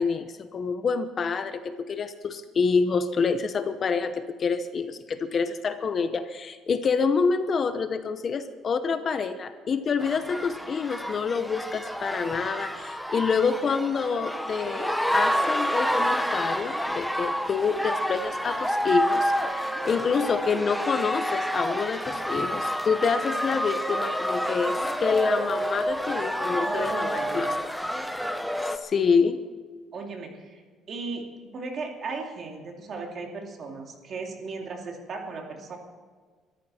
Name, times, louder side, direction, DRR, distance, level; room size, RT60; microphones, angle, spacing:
voice 1, 0.0-27.5 28.6-29.4, left 5 dB, 35° left, 10 dB, 0.8 m, -27 dB
sound 1, 10.0-28.8, equal, ahead, 0.9 m, -28 dB
voice 2, 26.6-27.5 29.9-30.6 30.9-35.8, right 3 dB, 40° right, 2 dB, 2.7 m, -36 dB
23.5 x 13.5 x 4.3 m, 1.5 s
cardioid pair, 160°, 0 cm